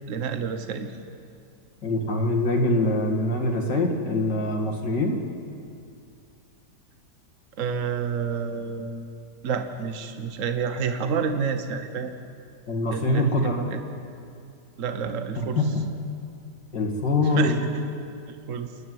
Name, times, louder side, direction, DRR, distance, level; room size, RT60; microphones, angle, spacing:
voice 1, 0.1-0.9 7.6-9.1 9.4-12.1 12.9-13.8 14.8-15.6 17.3-17.8 18.3-18.7, right 6 dB, 50° right, 7 dB, 1.4 m, -29 dB
voice 2, 1.8-5.2 12.7-13.6 15.6-15.9 16.7-17.5, left 2 dB, 80° left, 1 dB, 2.9 m, -24 dB
28.5 x 11.0 x 9.5 m, 2.4 s
omnidirectional pair, 1.9 m